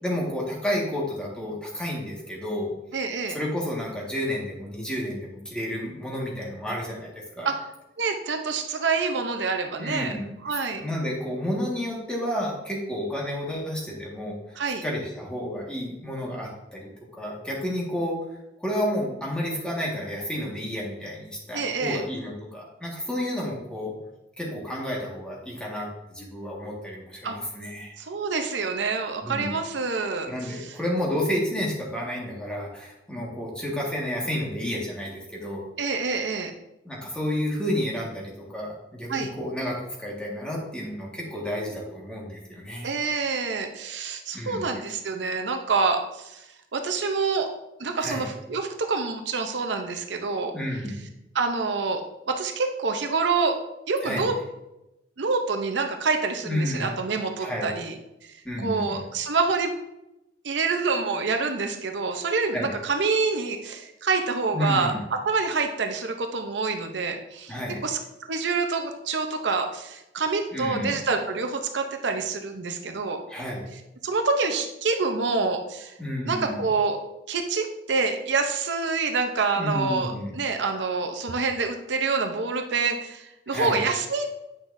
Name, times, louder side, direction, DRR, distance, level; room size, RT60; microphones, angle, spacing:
voice 1, 0.0-2.7 3.3-7.5 9.8-10.3 10.7-14.4 14.8-18.2 18.6-23.9 24.4-25.9 26.1-28.0 29.2-29.5 30.3-35.6 36.8-43.0 44.3-44.7 48.0-48.3 50.5-51.0 54.0-54.3 56.4-56.9 57.4-57.7 58.4-59.0 62.5-62.7 64.5-65.0 67.5-67.8 70.5-71.0 73.3-73.7 76.0-76.6 79.5-80.4 83.5-83.8, equal, 5° left, -4 dB, 1.6 m, -31 dB
voice 2, 2.9-3.4 7.4-7.6 8.0-10.2 10.4-10.8 14.6-14.8 21.5-22.0 27.2-27.4 28.0-30.8 35.8-36.5 39.1-39.3 42.8-47.5 47.8-50.5 51.3-53.6 53.9-54.4 55.2-59.7 60.4-67.5 67.8-68.0 68.3-73.2 73.7-75.9 76.2-77.0 77.3-84.3, right 4 dB, 80° right, 5 dB, 0.7 m, -27 dB
8.8 x 6.1 x 2.6 m, 0.91 s
head